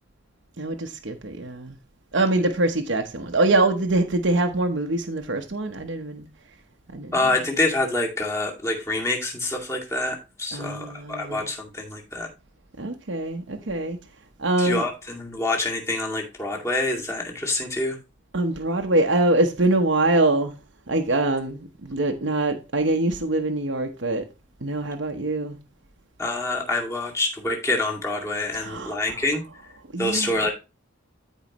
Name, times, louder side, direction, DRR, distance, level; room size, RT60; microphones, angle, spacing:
voice 1, 0.6-1.8 2.1-6.3 6.9-7.3 10.5-11.4 12.8-14.0 14.4-14.8 18.3-20.5 20.9-24.2 24.6-25.6 28.5-29.2 29.9-30.5, right 2 dB, 60° right, 1.0 m, -24 dB
voice 2, 7.1-12.3 14.6-18.0 26.2-29.4 30.0-30.5, left 2 dB, 15° left, 2.2 m, -26 dB
13.5 x 4.8 x 3.0 m
head